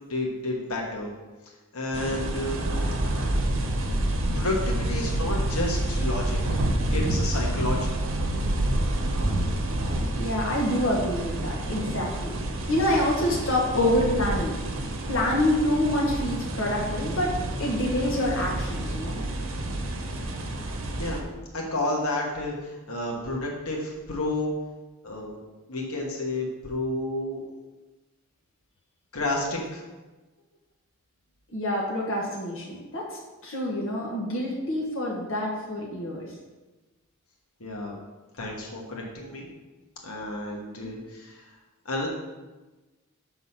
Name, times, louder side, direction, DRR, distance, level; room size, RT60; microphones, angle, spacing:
voice 1, 0.1-1.1 1.7-2.6 4.3-6.6 6.9-7.9 21.0-21.2 21.5-24.5 25.0-25.4 25.7-27.4 29.1-29.8 37.6-38.0 38.4-39.5 40.0-41.5 41.8-42.1, left 2 dB, 90° left, -1 dB, 1.4 m, -30 dB
sound 1, 1.9-21.2, right 1 dB, 65° right, 0.9 m, -28 dB
voice 2, 10.2-12.4 12.7-14.6 15.1-17.3 17.6-19.2 31.5-36.3, left 1 dB, 65° left, -3 dB, 1.3 m, -27 dB
6.4 x 4.0 x 5.7 m, 1.2 s
head